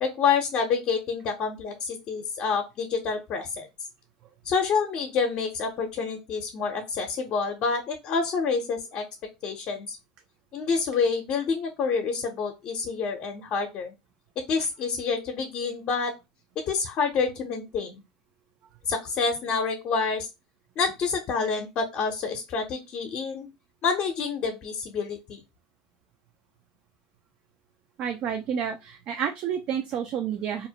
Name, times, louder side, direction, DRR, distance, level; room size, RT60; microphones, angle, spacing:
voice 1, 0.0-3.7 4.4-9.0 9.4-10.0 10.5-13.9 14.5-16.1 16.7-18.0 18.9-20.3 20.8-23.5 23.8-25.4, left 5 dB, 50° left, 3 dB, 0.6 m, -28 dB
voice 2, 28.0-30.7, right 8 dB, 50° right, 5 dB, 0.4 m, -30 dB
2.5 x 2.0 x 2.7 m, 0.24 s
supercardioid pair, 100°, 3 cm